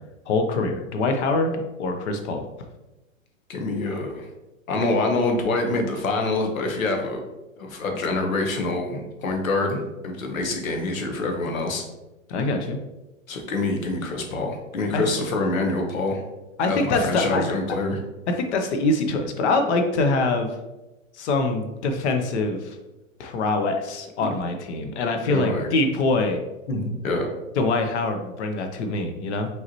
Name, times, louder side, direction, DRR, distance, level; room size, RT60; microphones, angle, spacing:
voice 1, 0.3-1.5 1.8-2.4 12.3-12.8 14.9-15.0 16.6-17.5 18.3-20.5 21.2-22.8 23.2-26.4 27.6-29.5, left 3 dB, 55° left, 5 dB, 0.8 m, -24 dB
voice 2, 3.5-4.3 4.7-7.2 7.6-11.8 13.3-16.2 16.7-18.0 24.2-24.3 25.2-25.7 26.7-27.3, left 2 dB, 80° left, 2 dB, 1.2 m, -26 dB
5.5 x 3.1 x 2.9 m, 1.0 s
hypercardioid pair, 130°, 40 cm